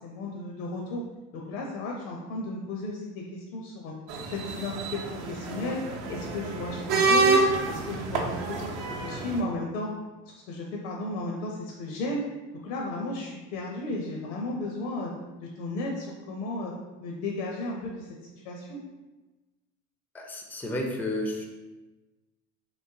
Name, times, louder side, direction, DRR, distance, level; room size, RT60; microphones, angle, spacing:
voice 1, 0.0-1.0 1.3-3.9 4.3-5.0 5.3-5.8 6.1-9.9 10.3-12.3 12.6-15.1 15.4-16.7 17.0-18.8, left 2 dB, 75° left, -1 dB, 0.6 m, -34 dB
sound 1, 4.1-9.4, right 3 dB, 60° right, 0.7 m, -27 dB
voice 2, 20.1-21.5, left 1 dB, 5° left, 1 dB, 0.3 m, -31 dB
3.1 x 3.0 x 2.7 m, 1.1 s
hypercardioid pair, 90°, 38 cm